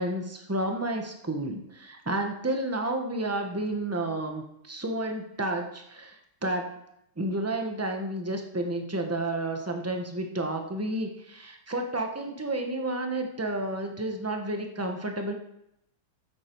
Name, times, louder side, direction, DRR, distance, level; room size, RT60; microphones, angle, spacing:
voice 1, 0.0-6.8 7.2-15.3, right 1 dB, 10° right, 3 dB, 0.7 m, -31 dB
13.0 x 8.4 x 4.6 m, 0.80 s
omnidirectional pair, 2.2 m